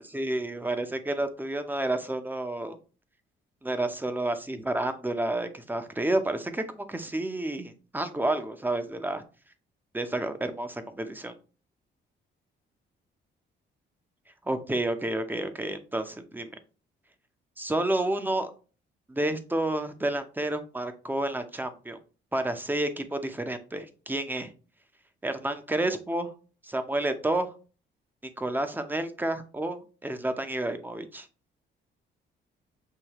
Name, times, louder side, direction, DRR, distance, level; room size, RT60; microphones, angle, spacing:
voice 1, 0.1-2.8 3.6-9.2 9.9-11.3 14.5-16.5 17.6-18.5 19.1-22.0 22.3-24.5 25.2-26.3 26.6-27.5 28.4-31.3, right 1 dB, 10° right, 8 dB, 0.7 m, -30 dB
6.5 x 2.7 x 3.0 m, 0.35 s
cardioid pair, 90°, 20 cm